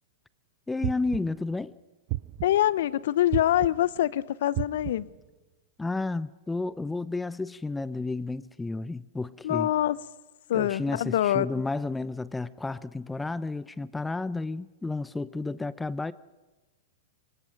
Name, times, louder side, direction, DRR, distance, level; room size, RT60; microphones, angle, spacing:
voice 1, 0.7-1.7 5.8-9.7 10.5-16.1, left 3 dB, 10° left, 0.7 m, -32 dB
sound 1, 0.8-1.5 2.1-2.7 3.3-4.0 4.6-5.2, right 20 dB, 50° right, 0.6 m, -34 dB
voice 2, 2.4-5.1 9.4-10.0 10.5-11.6, left 12 dB, 65° left, 0.7 m, -25 dB
24.5 x 21.0 x 5.3 m
hypercardioid pair, 100°, 0 cm